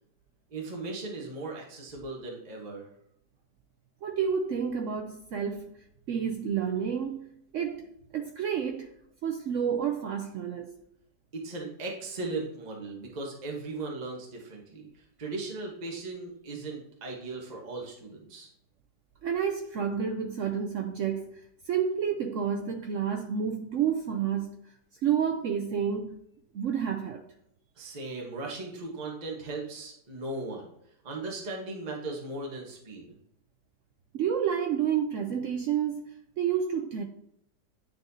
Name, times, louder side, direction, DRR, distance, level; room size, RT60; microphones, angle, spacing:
voice 1, 0.5-2.9 11.3-18.5 27.8-30.7 31.0-33.1, right 2 dB, 30° right, 1.1 m, -37 dB
voice 2, 4.0-5.7 6.1-8.9 9.2-10.7 19.2-24.6 25.0-26.2 26.5-27.2 34.1-37.0, right 8 dB, 75° right, 0.7 m, -30 dB
9.6 x 4.2 x 2.7 m
omnidirectional pair, 1.9 m